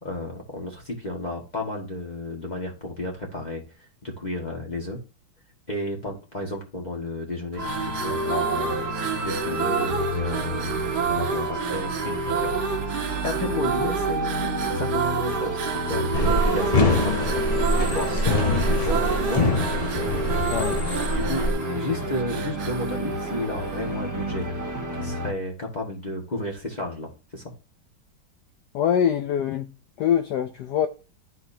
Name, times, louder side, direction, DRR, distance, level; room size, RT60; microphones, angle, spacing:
voice 1, 0.0-3.6 4.0-5.0 5.7-7.6 8.0-8.8 9.2-12.6 13.2-15.6 15.9-19.4 21.1-24.5 25.0-27.4, left 1 dB, 25° left, 1.5 m, -32 dB
sound 1, 7.5-24.0, right 5 dB, 60° right, 1.5 m, -29 dB
sound 2, 7.6-25.3, right 1 dB, 10° right, 1.0 m, -31 dB
sound 3, 16.1-21.5, left 2 dB, 40° left, 0.5 m, -24 dB
voice 2, 28.7-29.7 30.0-30.9, left 9 dB, 70° left, 1.1 m, -23 dB
12.0 x 4.3 x 2.7 m
omnidirectional pair, 2.2 m